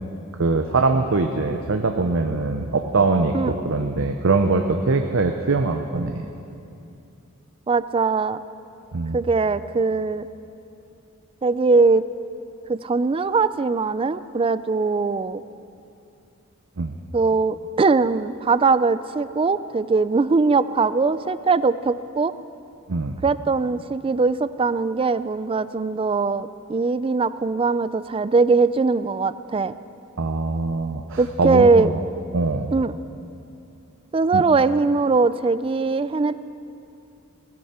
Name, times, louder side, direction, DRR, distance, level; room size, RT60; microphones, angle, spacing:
voice 1, 0.4-6.2 8.9-9.2 16.8-16.9 22.9-23.2 30.2-32.0 32.3-32.7 34.3-34.4, right 3 dB, 65° right, 5 dB, 0.7 m, -22 dB
voice 2, 7.7-8.4 9.1-10.3 11.4-12.0 12.7-15.4 17.1-22.3 23.2-29.7 31.2-31.9 32.7-32.9 34.1-36.4, right 4 dB, 25° right, 15 dB, 0.3 m, -21 dB
18.0 x 15.5 x 4.3 m, 2.7 s
head